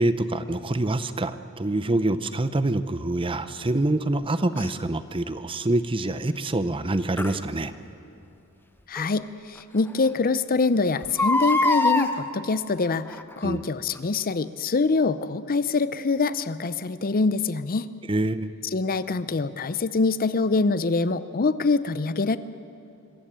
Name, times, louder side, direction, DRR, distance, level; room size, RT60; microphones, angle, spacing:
voice 1, 0.0-7.7 13.4-13.6 18.1-18.5, right 2 dB, 25° right, 12 dB, 0.7 m, -25 dB
Crying sobbing, 4.6-4.7 7.2-7.4 9.0-9.1 9.6-9.7 9.9-10.0 11.0-12.1 13.1-13.4 14.0-14.1, left 2 dB, 10° left, 0.9 m, -23 dB
voice 2, 8.9-17.9 18.7-22.4, left 3 dB, 40° left, 14 dB, 0.6 m, -24 dB
25.0 x 14.5 x 8.7 m, 2.9 s
head